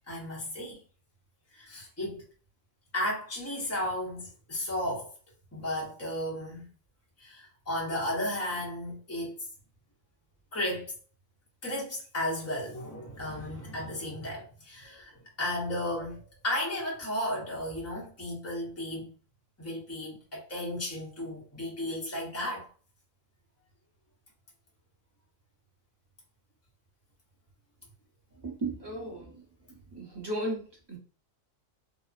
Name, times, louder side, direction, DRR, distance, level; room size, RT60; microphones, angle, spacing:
voice 1, 0.1-0.8 1.5-2.2 2.9-5.1 5.5-6.7 7.2-9.4 10.5-10.9 11.6-15.1 15.4-19.1 19.6-22.7, left 1 dB, 15° left, 0.7 m, -34 dB
voice 2, 28.4-29.3 29.9-30.6 30.9-31.0, right 1 dB, 20° right, 0.9 m, -34 dB
2.9 x 2.0 x 2.4 m
omnidirectional pair, 1.4 m